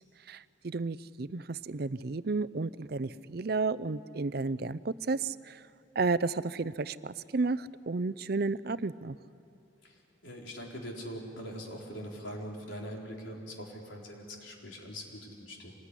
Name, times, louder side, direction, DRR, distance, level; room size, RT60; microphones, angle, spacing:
voice 1, 0.3-5.6 6.0-9.2, right 3 dB, 55° right, 17 dB, 0.5 m, -32 dB
voice 2, 9.8-15.7, equal, 85° left, -1 dB, 4.1 m, -42 dB
26.0 x 20.5 x 9.9 m, 2.6 s
head